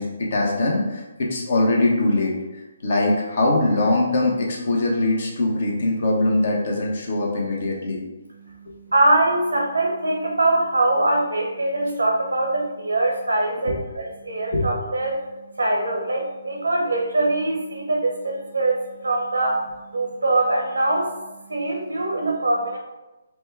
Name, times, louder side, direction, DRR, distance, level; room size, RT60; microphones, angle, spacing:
voice 1, 0.0-8.0 13.6-13.8 14.5-14.7, left 2 dB, 55° left, -1 dB, 0.9 m, -22 dB
voice 2, 8.9-15.2 15.6-21.1 21.5-22.8, right 2 dB, 80° right, 0 dB, 0.9 m, -23 dB
4.3 x 2.2 x 3.3 m, 1.1 s
figure-of-eight pair, 140°, 0 cm